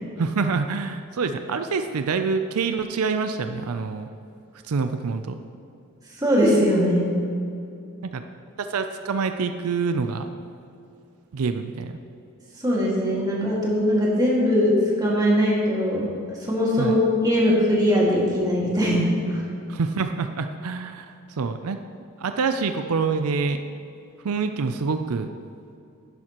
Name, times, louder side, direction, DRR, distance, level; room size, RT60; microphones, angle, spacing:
voice 1, 0.2-4.1 4.6-5.4 8.0-8.2 8.6-10.3 11.3-12.0 16.8-17.0 19.7-21.8 22.2-23.6 24.2-25.3, right 4 dB, 85° right, 8 dB, 0.5 m, -26 dB
voice 2, 6.2-7.1 12.6-16.1 16.4-17.0 17.2-19.4, equal, 20° right, -5 dB, 2.0 m, -21 dB
11.0 x 11.0 x 3.0 m, 2.6 s
head